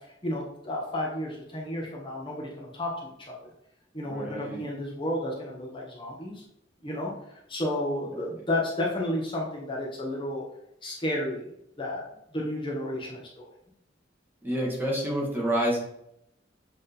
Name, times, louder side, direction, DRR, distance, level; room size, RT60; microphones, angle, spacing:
voice 1, 0.2-3.5 3.9-6.4 6.8-10.4 10.8-11.4 11.8-12.0 12.3-13.5, left 1 dB, 30° left, -3 dB, 1.4 m, -32 dB
voice 2, 4.1-4.7 8.1-8.3 14.4-15.8, equal, 10° right, -4 dB, 1.9 m, -29 dB
7.8 x 3.7 x 4.1 m, 0.77 s
head